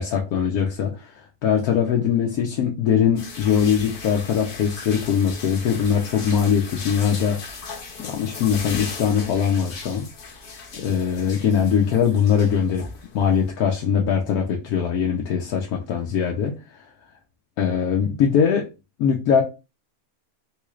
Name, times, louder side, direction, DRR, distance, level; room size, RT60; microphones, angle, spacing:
voice 1, 0.0-7.5 8.0-10.0 10.7-12.8 13.1-16.9 17.6-18.7 19.0-19.4, left 7 dB, 85° left, 1.2 m, -21 dB
sound 1, 3.2-13.5, left 4 dB, 50° left, 0.7 m, -37 dB
3.7 x 3.1 x 2.4 m
omnidirectional pair, 1.5 m